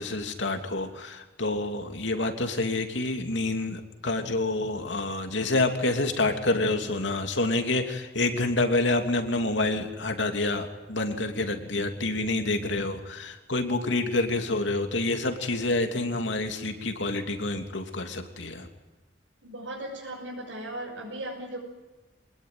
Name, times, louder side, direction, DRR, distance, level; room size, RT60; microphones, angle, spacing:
voice 1, 0.0-18.7, left 2 dB, 75° left, 5 dB, 3.0 m, -28 dB
voice 2, 19.4-21.6, right 1 dB, 85° right, -5 dB, 7.0 m, -37 dB
25.0 x 19.5 x 9.4 m, 1.2 s
head